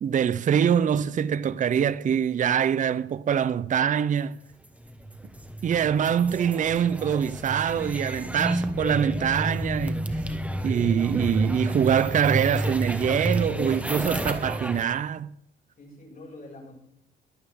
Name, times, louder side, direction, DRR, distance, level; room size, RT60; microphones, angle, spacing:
voice 1, 0.0-4.4 5.6-10.0 10.6-15.3, right 8 dB, 40° right, 0.5 m, -24 dB
sound 1, 4.9-14.8, right 1 dB, 5° right, 1.4 m, -30 dB
voice 2, 8.1-8.4 15.8-16.8, left 1 dB, 45° left, 6.2 m, -46 dB
22.5 x 8.7 x 3.6 m
cardioid pair, 90°, 20 cm